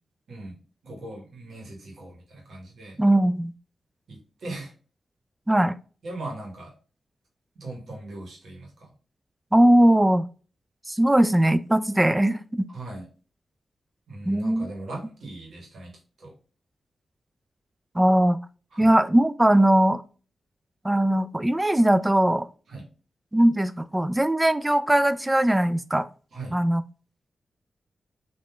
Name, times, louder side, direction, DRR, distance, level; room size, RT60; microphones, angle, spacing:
voice 1, 0.3-0.6 0.8-3.0 4.1-4.7 6.0-6.7 7.5-8.9 12.7-13.1 14.1-15.9 16.2-16.3 18.7-18.9 22.7-22.9 26.3-26.6, right 2 dB, 75° right, 1.1 m, -39 dB
voice 2, 3.0-3.5 5.5-5.8 9.5-10.3 10.9-12.7 14.3-14.7 17.9-18.4 18.8-20.0 20.8-22.5 23.3-26.1 26.5-26.8, right 1 dB, 15° right, 0.3 m, -20 dB
3.4 x 2.5 x 2.2 m
cardioid pair, 50°, 0 cm